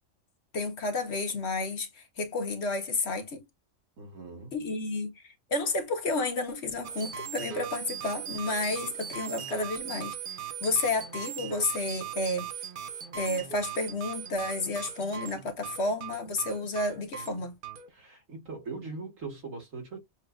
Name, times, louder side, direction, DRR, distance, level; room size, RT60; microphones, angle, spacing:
voice 1, 0.5-3.4 4.5-12.7 13.1-17.5, left 2 dB, 60° left, 1.3 m, -31 dB
voice 2, 4.0-4.6 10.6-10.8 17.9-20.0, right 4 dB, 85° right, 2.1 m, -41 dB
sound 1, 6.8-17.9, right 9 dB, 50° right, 0.8 m, -39 dB
7.2 x 2.4 x 2.3 m
omnidirectional pair, 1.3 m